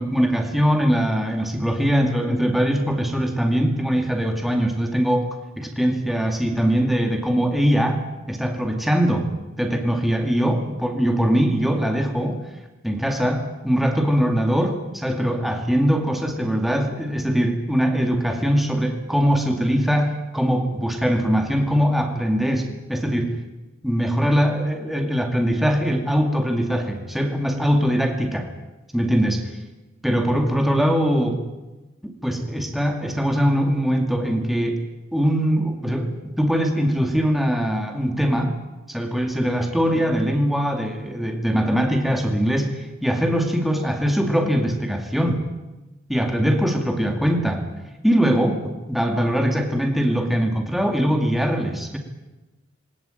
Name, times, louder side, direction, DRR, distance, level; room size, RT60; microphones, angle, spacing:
voice 1, 0.0-5.3 5.6-8.0 8.3-9.3 9.6-12.4 12.8-23.3 23.8-28.5 28.9-29.4 30.0-31.4 32.0-34.8 35.1-36.1 36.4-38.6 38.9-45.4 46.1-47.6 48.0-52.0, equal, ahead, 3 dB, 2.2 m, -21 dB
20.0 x 19.5 x 9.1 m, 1.1 s
head